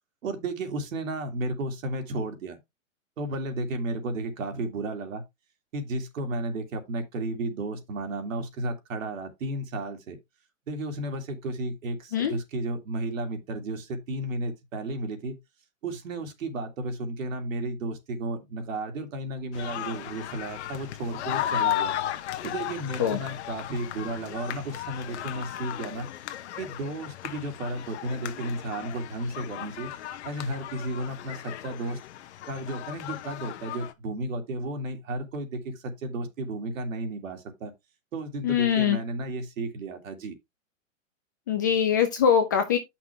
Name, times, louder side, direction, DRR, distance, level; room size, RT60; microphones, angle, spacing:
voice 1, 0.2-2.6 3.2-5.2 5.7-10.2 10.7-15.4 15.8-21.9 22.4-26.1 26.6-29.9 30.2-32.0 32.5-37.7 38.1-40.4, right 2 dB, 75° right, 2.6 m, -33 dB
sound 1, 19.5-33.9, left 12 dB, 55° left, 1.1 m, -35 dB
voice 2, 38.4-39.0 41.5-42.8, left 8 dB, 15° left, 0.4 m, -22 dB
9.2 x 6.0 x 3.4 m
hypercardioid pair, 155°, 39 cm